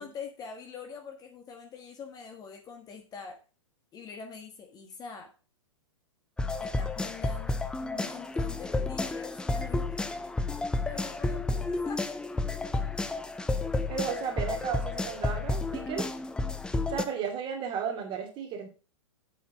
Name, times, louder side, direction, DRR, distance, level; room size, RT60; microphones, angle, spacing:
voice 1, 0.0-3.4 3.9-5.3 6.6-10.1 10.9-12.0, left 5 dB, 25° left, 4 dB, 1.6 m, -44 dB
sound 1, 6.4-17.0, left 2 dB, 5° left, 0.6 m, -31 dB
voice 2, 13.9-16.1 16.9-18.7, right 7 dB, 30° right, 3 dB, 2.6 m, -34 dB
8.0 x 5.1 x 6.1 m, 0.35 s
figure-of-eight pair, 110°, 16 cm